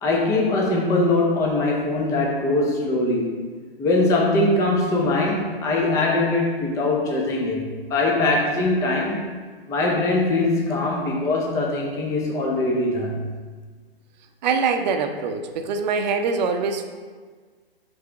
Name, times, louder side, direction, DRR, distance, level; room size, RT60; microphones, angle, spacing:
voice 1, 0.0-3.4 3.8-9.2 9.7-13.3, left 2 dB, 10° left, -1 dB, 0.5 m, -22 dB
voice 2, 14.4-16.8, right 5 dB, 45° right, 6 dB, 0.6 m, -23 dB
5.7 x 3.4 x 4.8 m, 1.5 s
hypercardioid pair, 125°, 31 cm